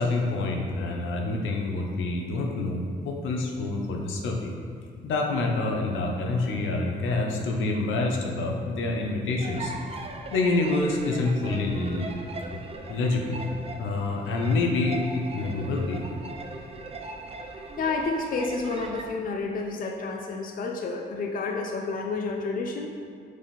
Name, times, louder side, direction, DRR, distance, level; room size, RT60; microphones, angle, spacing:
voice 1, 0.0-4.5 5.0-9.7 10.3-12.1 12.9-13.4 13.8-16.0, left 2 dB, 80° left, 1 dB, 0.8 m, -27 dB
sound 1, 9.4-19.0, right 3 dB, 30° right, 0.5 m, -40 dB
voice 2, 17.8-23.0, left 3 dB, 45° left, 2 dB, 0.6 m, -30 dB
6.4 x 3.5 x 4.2 m, 2.2 s
cardioid pair, 90°, 20 cm